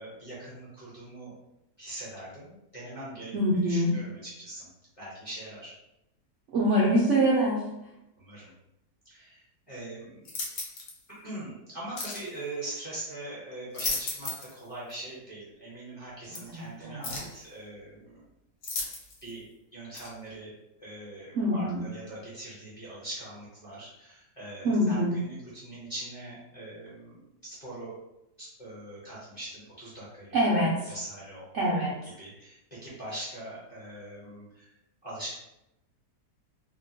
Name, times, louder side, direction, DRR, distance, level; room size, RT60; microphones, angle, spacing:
voice 1, 0.0-1.4 1.8-3.3 3.6-4.7 5.0-5.7 8.2-8.5 9.0-10.3 11.2-18.2 19.2-19.4 19.7-20.5 20.8-28.0 28.4-30.4 30.9-31.5 32.2-34.7 35.0-35.3, right 1 dB, 25° left, -9 dB, 0.7 m, -42 dB
voice 2, 3.3-3.9 6.5-7.6 16.5-17.2 21.3-21.9 24.6-25.2 30.3-30.9 31.5-31.9, equal, 65° right, -6 dB, 0.7 m, -25 dB
sound 1, 10.2-11.0 12.0-12.3 13.5-14.6 14.9-15.0 16.3-16.4 17.0-17.4 18.6-19.3 19.9-20.1, left 3 dB, 65° left, 0.7 m, -35 dB
2.9 x 2.2 x 2.7 m, 0.88 s
omnidirectional pair, 1.8 m